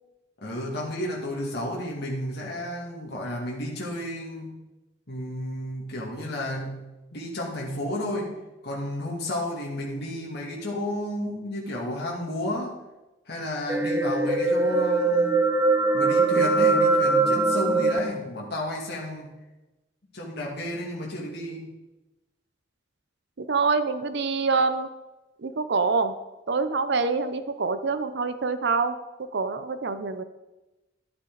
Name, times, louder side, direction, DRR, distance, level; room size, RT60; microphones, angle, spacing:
voice 1, 0.4-4.6 5.1-8.3 8.6-12.8 13.3-15.4 15.9-19.3 20.1-21.7, left 1 dB, 60° left, -3 dB, 2.5 m, -32 dB
sound 1, 13.7-18.0, right 3 dB, 15° right, 0.7 m, -21 dB
voice 2, 23.4-24.9 25.4-26.1 26.5-29.0 29.3-30.2, right 4 dB, 60° right, 10 dB, 0.7 m, -25 dB
13.0 x 8.4 x 4.0 m, 1.0 s
head